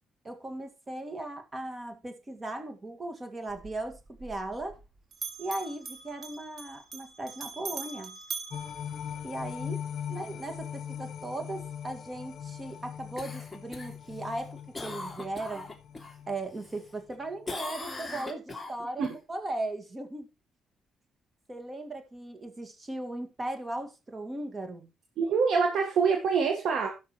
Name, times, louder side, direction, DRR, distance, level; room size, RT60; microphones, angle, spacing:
voice 1, 0.2-4.8 5.4-8.2 9.2-15.7 16.3-20.3 21.5-24.9, right 2 dB, 25° right, 2.0 m, -37 dB
Bell, 3.5-4.9 5.1-9.6, right 5 dB, 50° right, 2.0 m, -42 dB
sound 1, 8.5-16.9 17.3-17.4, left 8 dB, 60° left, 1.1 m, -40 dB
Cough, 13.2-16.2 16.6-17.2 17.5-19.1 23.6-23.7, left 2 dB, 10° left, 2.5 m, -40 dB
voice 2, 25.2-26.9, right 5 dB, 70° right, 1.6 m, -25 dB
17.0 x 6.0 x 3.1 m
cardioid pair, 90°, 0 cm